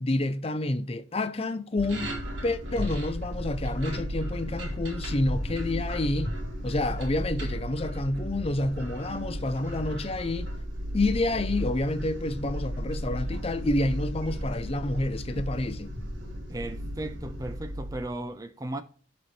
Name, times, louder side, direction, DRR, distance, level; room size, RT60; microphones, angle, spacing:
voice 1, 0.0-2.1 2.4-6.3 6.6-10.5 10.9-15.9, left 2 dB, 30° left, 0.6 m, -29 dB
sound 1, 1.8-18.1, equal, 60° right, 2.4 m, -34 dB
voice 2, 16.5-18.8, right 1 dB, 15° right, 0.5 m, -36 dB
12.0 x 4.3 x 3.2 m
head